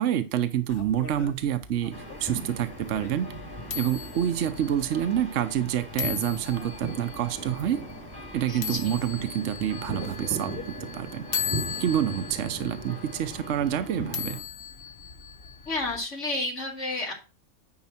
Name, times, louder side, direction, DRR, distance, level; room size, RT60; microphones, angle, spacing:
voice 1, 0.0-1.9 2.2-3.3 3.7-7.8 8.3-11.3 11.8-14.4, right 10 dB, 70° right, 9 dB, 1.0 m, -27 dB
sound 1, 0.7-16.0, left 7 dB, 50° left, 1.1 m, -39 dB
sound 2, 1.9-14.4, right 2 dB, 20° left, 1.8 m, -39 dB
voice 2, 8.5-8.9 15.7-17.1, left 2 dB, 70° left, -1 dB, 2.5 m, -31 dB
9.7 x 4.7 x 4.3 m, 0.30 s
omnidirectional pair, 1.3 m